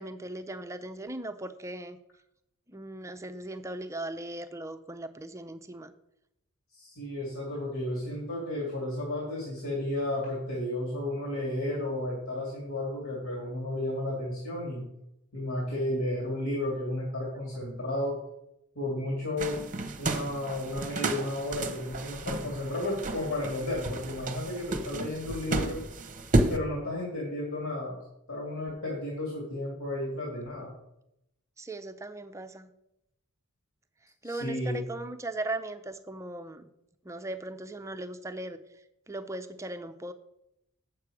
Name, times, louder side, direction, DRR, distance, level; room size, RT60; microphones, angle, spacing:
voice 1, 0.0-2.0 2.7-5.9 31.6-32.7 34.2-36.7 37.0-38.6 39.1-40.1, right 2 dB, 15° right, 8 dB, 0.5 m, -38 dB
voice 2, 6.7-14.8 15.3-18.2 18.7-19.6 20.0-25.8 26.5-28.0 28.3-30.7 34.2-34.8, left 1 dB, 65° left, -4 dB, 2.5 m, -33 dB
sound 1, 19.4-26.6, right 2 dB, 35° right, 0.8 m, -32 dB
8.4 x 6.7 x 4.8 m, 0.83 s
head